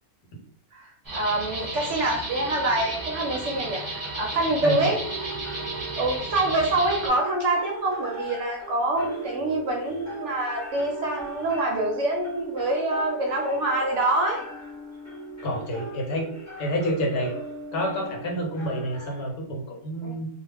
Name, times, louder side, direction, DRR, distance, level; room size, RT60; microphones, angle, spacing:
voice 1, 0.7-3.8 4.2-5.0 6.0-14.4 20.0-20.2, right 2 dB, 65° right, 0 dB, 0.8 m, -26 dB
sound 1, 1.0-7.1, right 2 dB, 20° right, 0.7 m, -34 dB
sound 2, 2.3-19.3, right 3 dB, 20° left, 0.4 m, -39 dB
voice 2, 4.6-4.9 15.4-16.3 16.6-17.3 17.7-20.3, equal, 85° left, 1 dB, 1.2 m, -28 dB
2.4 x 2.3 x 3.3 m, 0.62 s
omnidirectional pair, 1.6 m